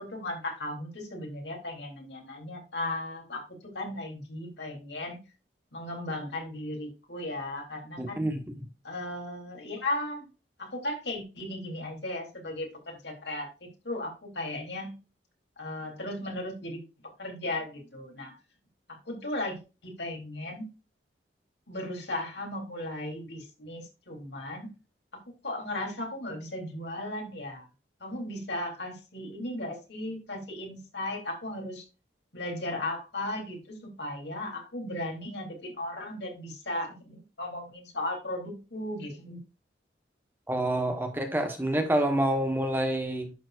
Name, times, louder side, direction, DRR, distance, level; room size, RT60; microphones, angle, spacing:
voice 1, 0.0-5.2 5.7-8.3 8.8-10.3 10.6-15.0 15.6-16.8 17.2-18.3 18.9-20.7 21.7-24.7 25.4-27.7 28.0-31.9 32.3-39.4, left 1 dB, 70° left, 3.9 m, -36 dB
voice 2, 8.0-8.7 40.5-43.3, right 1 dB, 10° right, 1.5 m, -28 dB
11.0 x 7.5 x 2.7 m
head